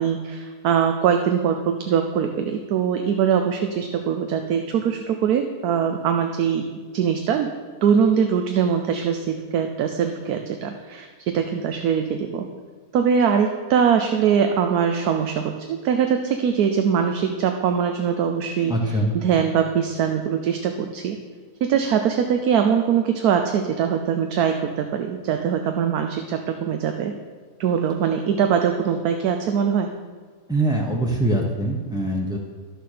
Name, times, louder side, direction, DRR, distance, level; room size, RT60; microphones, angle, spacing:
voice 1, 0.0-6.7 6.9-7.5 7.8-12.4 12.9-18.7 19.1-21.2 21.6-27.1 27.6-29.9, right 7 dB, 70° right, 5 dB, 1.1 m, -22 dB
voice 2, 18.6-19.1 30.5-32.4, right 1 dB, 5° right, -2 dB, 0.4 m, -23 dB
11.5 x 6.8 x 6.6 m, 1.5 s
omnidirectional pair, 1.8 m